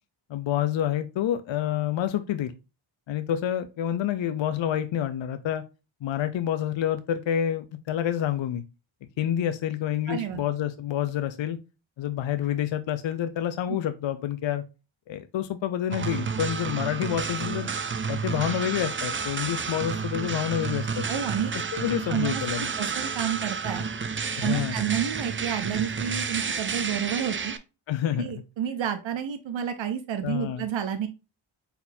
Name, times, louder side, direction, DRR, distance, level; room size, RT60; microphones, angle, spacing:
voice 1, 0.3-2.5 3.1-5.6 6.0-8.6 9.0-11.6 12.0-14.6 15.1-17.7 18.1-21.0 21.5-22.7 24.4-24.8 27.9-28.3 30.2-30.6, left 10 dB, 65° left, 11 dB, 0.6 m, -28 dB
voice 2, 10.1-10.4 21.1-21.5 22.1-23.8 24.4-27.5 28.2-31.1, right 9 dB, 70° right, 9 dB, 0.7 m, -30 dB
sound 1, 15.9-27.6, right 5 dB, 25° right, 0.4 m, -31 dB
4.2 x 4.0 x 2.6 m, 0.29 s
cardioid pair, 75°, 49 cm